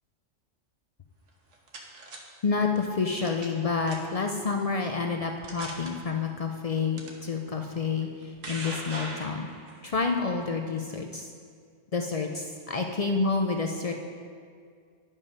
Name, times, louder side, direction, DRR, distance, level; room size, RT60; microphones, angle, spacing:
sound 1, 1.3-2.2 3.2-3.6 3.9-4.2 4.9-5.0 5.4-5.9 7.0-7.1 8.0-9.8, right 2 dB, 80° right, 1.4 m, -39 dB
voice 1, 2.4-9.5 9.8-11.3 11.9-13.9, left 4 dB, 65° left, 3 dB, 0.3 m, -29 dB
9.7 x 5.4 x 5.4 m, 2.1 s
omnidirectional pair, 1.3 m